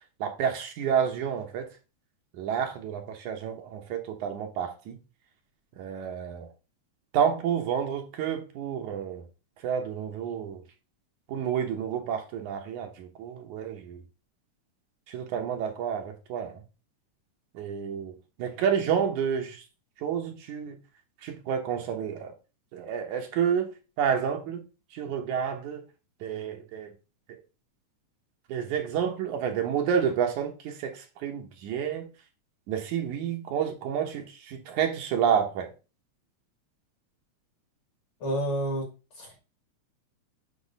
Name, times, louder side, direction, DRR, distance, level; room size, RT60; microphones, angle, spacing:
voice 1, 0.2-1.7 2.4-5.0 5.8-6.5 7.1-9.2 9.6-10.6 11.3-14.0 15.1-16.6 17.5-19.6 20.0-20.8 21.2-22.3 22.7-23.7 24.0-24.6 24.9-25.8 26.2-26.9 28.5-32.1 32.7-35.7, right 8 dB, 75° right, 2.4 m, -29 dB
voice 2, 38.2-38.9 39.2-39.4, right 1 dB, 50° left, 2.0 m, -29 dB
8.1 x 3.1 x 5.2 m
omnidirectional pair, 3.6 m